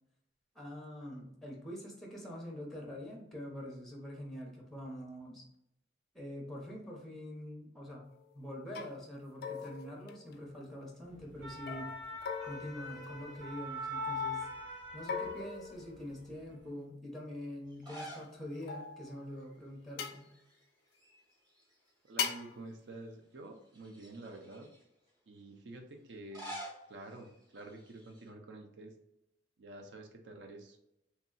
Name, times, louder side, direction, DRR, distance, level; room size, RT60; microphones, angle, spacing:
voice 1, 0.6-5.4 6.1-8.1 8.3-11.9 12.4-14.5 14.9-20.3, equal, ahead, -1 dB, 0.6 m, -45 dB
sound 1, 8.1-8.3 8.7-9.0 9.4-10.8 11.7-13.9 15.1-16.5 18.0-19.3 20.0-20.2 22.2-22.6, left 6 dB, 55° left, 0.3 m, -41 dB
sound 2, 11.2-15.9 16.3-16.5, left 2 dB, 85° right, 1.0 m, -42 dB
sound 3, 17.7-18.4 18.7-18.8 20.1-20.6 20.9-22.1 22.7-22.8 23.7-24.8 26.1-28.3, right 1 dB, 25° right, 0.9 m, -49 dB
voice 2, 22.0-24.7 25.3-26.5 26.9-28.9 29.6-30.9, right 2 dB, 65° right, 4 dB, 0.6 m, -49 dB
2.9 x 2.7 x 2.3 m, 0.83 s
head